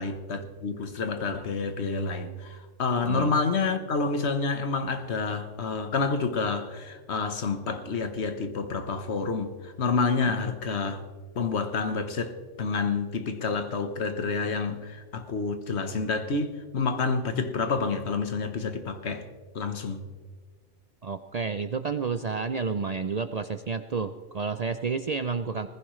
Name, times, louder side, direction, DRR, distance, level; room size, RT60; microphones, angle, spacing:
voice 1, 0.0-11.0 11.3-19.3 19.5-20.1, left 4 dB, 70° left, 1.4 m, -29 dB
voice 2, 21.0-25.7, right 5 dB, 50° right, 0.5 m, -30 dB
19.5 x 15.0 x 3.2 m
omnidirectional pair, 1.2 m